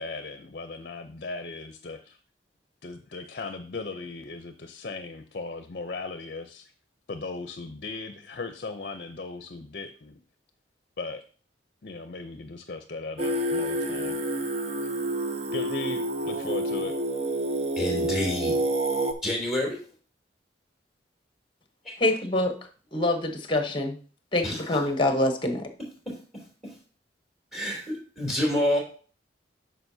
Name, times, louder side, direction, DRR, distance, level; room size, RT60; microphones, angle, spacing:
voice 1, 0.0-2.2 2.8-6.7 7.1-10.1 11.0-11.2 11.8-14.2 15.5-16.9, left 3 dB, 50° left, 0.6 m, -37 dB
Singing, 13.2-19.1, right 1 dB, 35° right, 0.6 m, -28 dB
voice 2, 17.7-18.6 19.2-19.8 21.8-21.9 24.4-24.6 26.1-26.2 26.6-26.7 27.5-28.8, left 1 dB, ahead, 3.0 m, -28 dB
voice 3, 22.0-22.5 22.9-24.0 24.3-25.7, left 1 dB, 25° left, 1.0 m, -25 dB
9.3 x 6.1 x 2.7 m
head